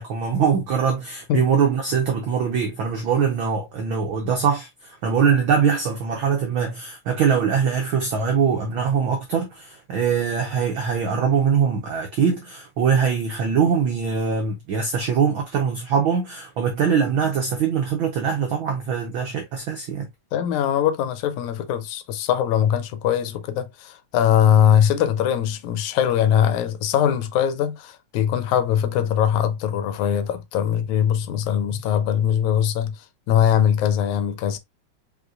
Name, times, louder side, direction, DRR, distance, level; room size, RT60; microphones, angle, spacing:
voice 1, 0.0-20.1, right 6 dB, 85° right, 1.1 m, -22 dB
voice 2, 20.3-34.6, left 9 dB, 85° left, 2.0 m, -21 dB
5.3 x 3.3 x 2.3 m
omnidirectional pair, 3.3 m